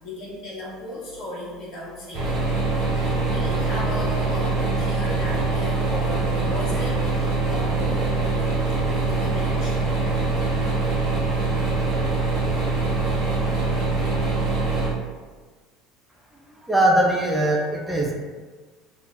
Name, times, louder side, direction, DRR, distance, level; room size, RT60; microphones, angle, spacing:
voice 1, 0.0-2.6 2.9-9.8, left 1 dB, 55° left, -6 dB, 1.2 m, -36 dB
sound 1, 2.1-14.9, right 3 dB, 55° right, 1.1 m, -23 dB
voice 2, 16.7-18.1, right 1 dB, 10° right, -1 dB, 0.5 m, -20 dB
3.0 x 2.0 x 3.7 m, 1.4 s
hypercardioid pair, 65°, 0 cm